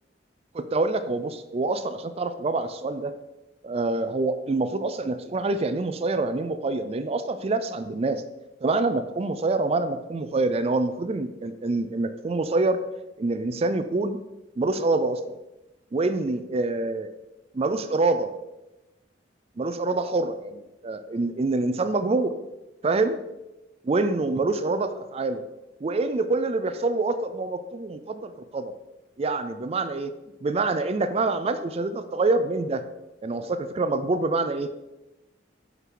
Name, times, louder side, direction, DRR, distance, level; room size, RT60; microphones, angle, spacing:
voice 1, 0.5-3.1 3.6-8.2 8.6-12.8 13.2-14.2 14.6-15.4 15.9-17.1 17.5-18.3 19.6-22.3 22.8-23.2 23.8-25.4 25.8-28.7 29.2-30.1 30.4-32.8 33.2-34.9, right 3 dB, 35° right, 10 dB, 0.4 m, -26 dB
6.0 x 5.7 x 3.8 m, 0.98 s
head